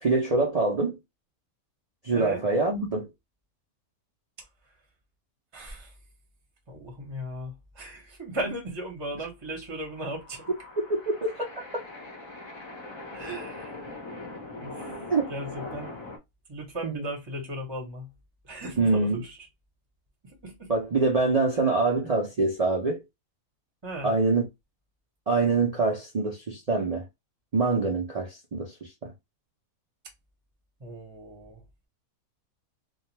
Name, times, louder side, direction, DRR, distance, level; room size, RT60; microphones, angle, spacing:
voice 1, 0.0-1.0 2.0-3.1 10.9-11.3 15.1-15.2 16.8-17.0 18.8-19.2 20.7-23.0 24.0-24.5 25.3-27.0 27.5-29.1, right 3 dB, 60° right, 0.4 m, -25 dB
voice 2, 2.1-2.4 5.5-5.9 6.7-10.5 13.1-13.8 14.6-15.0 15.3-16.0 16.5-18.1 18.4-19.4 20.4-20.7 21.5-21.8 23.8-24.2 30.8-31.6, right 1 dB, 25° right, 0.7 m, -37 dB
sound 1, 9.8-16.2, left 2 dB, 30° left, 0.5 m, -41 dB
2.4 x 2.2 x 3.0 m
omnidirectional pair, 1.6 m